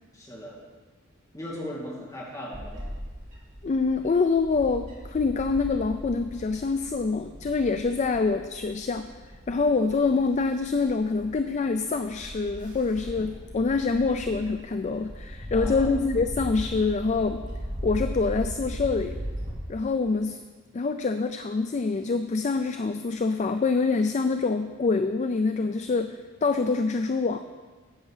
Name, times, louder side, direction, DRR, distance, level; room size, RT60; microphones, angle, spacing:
voice 1, 0.1-0.6 1.3-2.9 15.5-15.9, equal, 15° left, -4 dB, 2.4 m, -38 dB
Bird / Wind, 2.5-19.5, equal, 40° right, 2.8 m, -38 dB
voice 2, 3.6-9.1 9.5-17.5 17.8-19.2 19.7-20.4 20.7-27.4, left 4 dB, 35° left, 8 dB, 0.3 m, -25 dB
11.0 x 8.2 x 4.9 m, 1.3 s
head